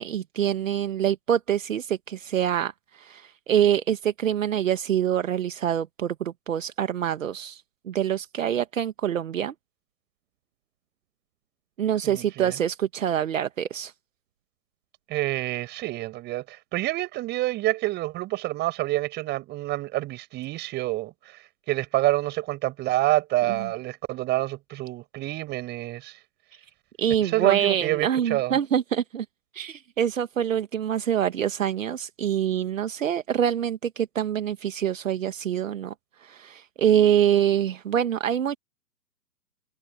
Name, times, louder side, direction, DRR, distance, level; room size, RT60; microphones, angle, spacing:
voice 1, 0.0-9.5 11.8-13.9 23.5-23.7 27.0-29.3 29.5-35.9 36.2-38.6, right 9 dB, 55° right, 1.6 m, -25 dB
voice 2, 12.0-12.5 15.1-21.4 21.7-26.2 27.2-28.6, right 17 dB, 20° right, 7.9 m, -28 dB
figure-of-eight pair, 135°, 47 cm